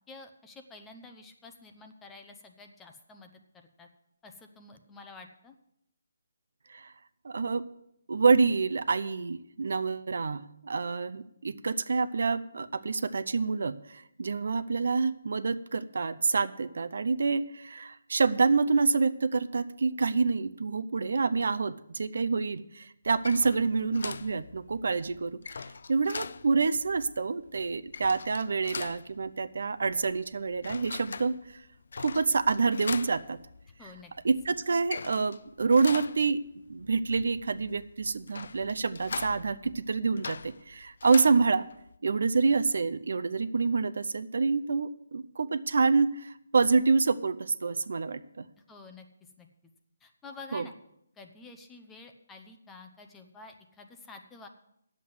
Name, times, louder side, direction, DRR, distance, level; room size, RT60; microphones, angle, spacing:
voice 1, 0.1-3.9 4.2-5.5 33.8-34.1 48.7-49.1 49.4-49.5 50.0-50.7 51.2-54.5, left 3 dB, 10° left, 5 dB, 0.8 m, -49 dB
voice 2, 7.2-7.7 8.1-25.3 25.9-31.4 32.0-33.4 34.2-36.4 36.7-41.7 42.0-48.5 50.5-50.7, right 4 dB, 70° right, 14 dB, 0.6 m, -27 dB
sound 1, 23.0-42.0, left 5 dB, 65° left, 0.4 m, -43 dB
9.4 x 7.6 x 7.8 m, 0.77 s
hypercardioid pair, 165°, 0 cm